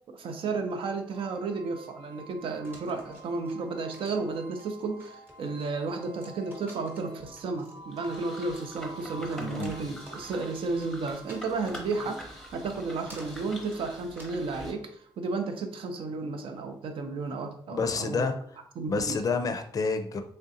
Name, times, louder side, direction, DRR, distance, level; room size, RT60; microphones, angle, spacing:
voice 1, 0.1-14.9 15.2-18.3 18.8-19.2, right 3 dB, 75° right, 6 dB, 0.5 m, -33 dB
sound 1, 1.1-16.0, right 2 dB, 50° right, 0.9 m, -51 dB
sound 2, 2.6-14.7, right 1 dB, 25° right, 0.9 m, -54 dB
sound 3, 7.9-14.7, equal, 5° left, 0.7 m, -45 dB
voice 2, 9.4-9.7 17.7-18.3 18.9-20.2, left 4 dB, 40° left, 6 dB, 0.4 m, -29 dB
3.7 x 3.2 x 2.7 m, 0.64 s
wide cardioid pair, 155°, 9 cm